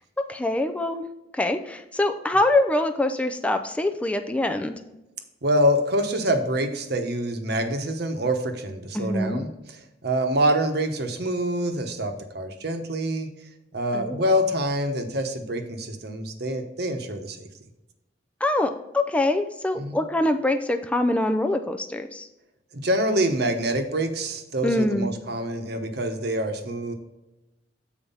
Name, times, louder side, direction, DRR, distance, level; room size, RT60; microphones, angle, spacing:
voice 1, 0.3-1.1 1.3-4.7 8.9-9.4 13.9-14.2 18.4-22.3 24.6-25.1, left 1 dB, 5° left, 6 dB, 0.4 m, -24 dB
voice 2, 5.4-9.5 10.0-13.3 13.7-17.4 19.8-20.0 22.7-26.9, equal, 60° right, 6 dB, 1.0 m, -26 dB
7.2 x 4.7 x 5.5 m, 0.95 s
head